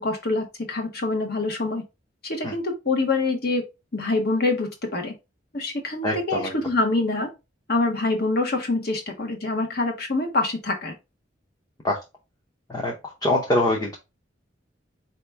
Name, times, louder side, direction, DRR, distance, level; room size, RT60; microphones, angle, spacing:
voice 1, 0.0-1.8 2.2-3.6 3.9-5.1 5.5-7.3 7.7-10.9, left 2 dB, 55° left, 1.2 m, -25 dB
voice 2, 6.0-6.5 11.8-12.0 12.7-12.9 13.2-13.9, left 1 dB, 20° left, 0.7 m, -23 dB
4.5 x 2.9 x 3.3 m
head